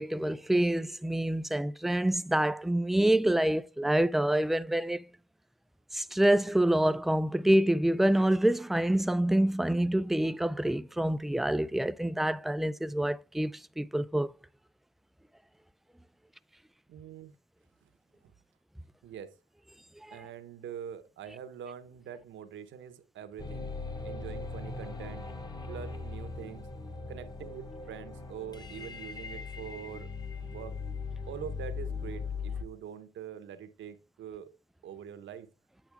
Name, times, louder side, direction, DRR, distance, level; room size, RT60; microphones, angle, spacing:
voice 1, 0.0-5.0 5.9-14.3 20.0-20.2, right 1 dB, ahead, 0.3 m, -27 dB
voice 2, 16.9-17.3 17.8-17.9 19.0-19.3 20.1-23.7 24.0-25.3 25.7-26.7 27.1-30.1 30.4-30.8 31.3-34.5 34.8-35.5, right 9 dB, 70° right, 1.1 m, -44 dB
sound 1, 23.4-32.6, left 4 dB, 20° left, 1.3 m, -39 dB
8.8 x 5.8 x 3.5 m
cardioid pair, 90°, 20 cm